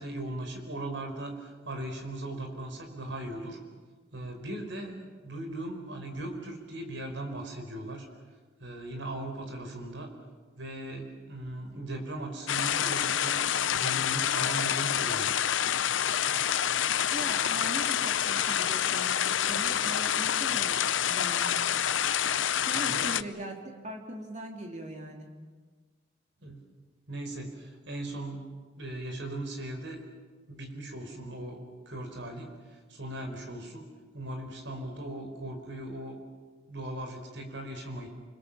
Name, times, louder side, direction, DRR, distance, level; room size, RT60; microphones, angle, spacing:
voice 1, 0.0-3.6 4.1-5.0 5.2-8.1 8.6-10.1 10.6-13.4 13.7-15.4 22.8-23.2 26.4-26.6 27.1-28.4 28.7-30.0 30.5-31.6 31.8-33.9 34.1-36.2 36.7-38.1, right 1 dB, 70° right, 4 dB, 5.0 m, -38 dB
sound 1, 12.5-23.2, left 9 dB, 80° left, 0.7 m, -27 dB
voice 2, 17.1-21.5 22.6-23.6 23.8-25.3, right 1 dB, 35° right, 2 dB, 3.5 m, -40 dB
29.0 x 22.0 x 7.4 m, 1.4 s
head